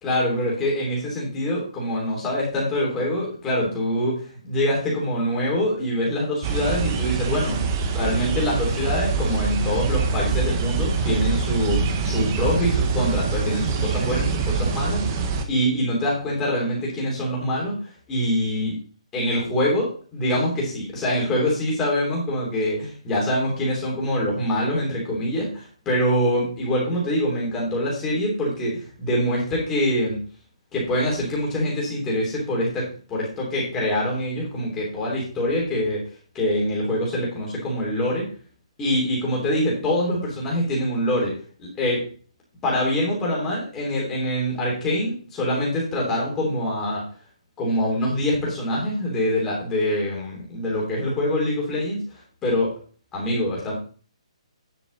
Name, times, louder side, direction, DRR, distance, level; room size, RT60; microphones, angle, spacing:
voice 1, 0.0-4.2 4.4-7.6 7.9-17.7 18.1-18.8 19.1-30.2 30.7-36.1 36.3-38.3 38.8-41.3 41.6-42.0 42.6-47.0 47.6-52.0 52.4-52.7 53.1-53.7, left 1 dB, 10° left, -4 dB, 3.3 m, -24 dB
sound 1, 6.4-15.5, right 5 dB, 20° right, 0.9 m, -24 dB
10.5 x 7.0 x 4.1 m, 0.40 s
hypercardioid pair, 175°, 3 cm